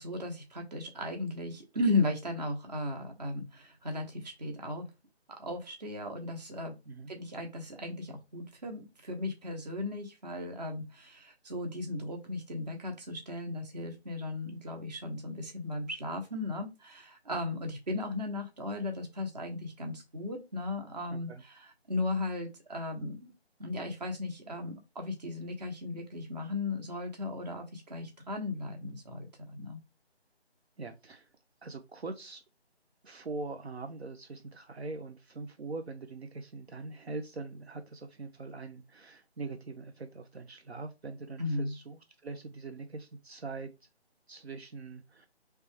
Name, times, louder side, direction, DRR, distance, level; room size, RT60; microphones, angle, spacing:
voice 1, 0.0-4.9 5.4-6.7 7.1-23.3 23.6-29.8 41.4-41.7, left 2 dB, 40° right, 3 dB, 1.2 m, -36 dB
voice 2, 21.1-21.4 30.8-31.3 31.6-32.4 33.0-43.7 44.3-45.3, right 3 dB, 70° right, 7 dB, 0.8 m, -42 dB
4.3 x 3.3 x 3.4 m, 0.25 s
figure-of-eight pair, 160°, 33 cm